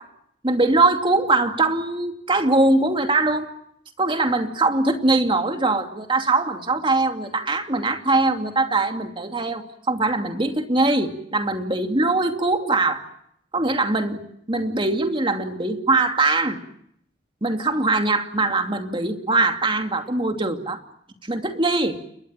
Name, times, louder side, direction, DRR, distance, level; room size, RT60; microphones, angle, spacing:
voice 1, 0.4-3.5 4.0-13.0 13.5-14.2 14.5-16.6 17.4-20.8 21.2-22.0, right 2 dB, 25° right, 5 dB, 2.6 m, -22 dB
29.5 x 22.0 x 7.6 m, 0.71 s
head